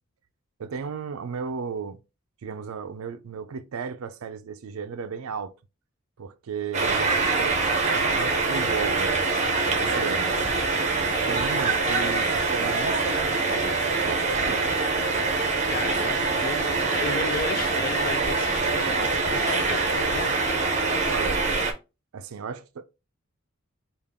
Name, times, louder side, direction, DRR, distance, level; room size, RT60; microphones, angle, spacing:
voice 1, 0.6-2.0 2.4-5.5 6.2-10.5 11.3-14.7 21.1-21.5 22.1-22.8, right 5 dB, 80° right, 0.4 m, -35 dB
sound 1, 6.7-21.7, right 3 dB, 30° right, 0.6 m, -24 dB
voice 2, 15.7-20.4, left 5 dB, 40° left, 0.3 m, -35 dB
3.6 x 2.4 x 3.5 m
head